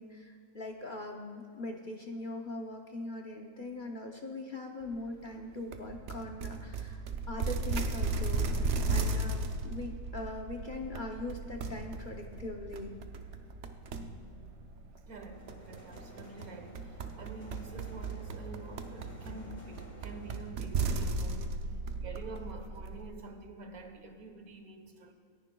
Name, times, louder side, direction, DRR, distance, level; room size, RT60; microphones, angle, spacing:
voice 1, 0.0-7.0 7.3-12.9, left 2 dB, 45° left, 2 dB, 0.7 m, -41 dB
sound 1, 5.7-23.1, right 3 dB, 60° right, 1.0 m, -36 dB
voice 2, 15.0-21.7 22.0-25.1, right 3 dB, 80° right, 6 dB, 1.6 m, -47 dB
sound 2, 15.3-20.5, left 1 dB, 10° left, 1.6 m, -54 dB
27.0 x 10.5 x 2.3 m, 2.2 s
omnidirectional pair, 1.5 m